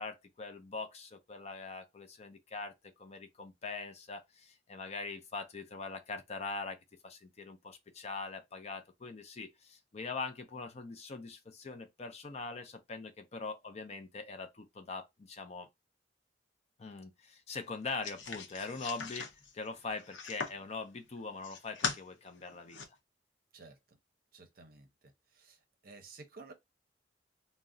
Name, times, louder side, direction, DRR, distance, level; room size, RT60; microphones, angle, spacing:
voice 1, 0.0-6.8 7.0-15.7 16.8-19.3 19.5-22.8, left 4 dB, 35° left, 0.5 m, -42 dB
sound 1, 18.0-20.7 21.2-22.0 22.4-22.9, left 5 dB, 90° left, 0.6 m, -40 dB
voice 2, 23.5-24.0 24.3-24.9 25.3-26.5, right 3 dB, 55° right, 0.6 m, -53 dB
2.4 x 2.0 x 3.7 m
head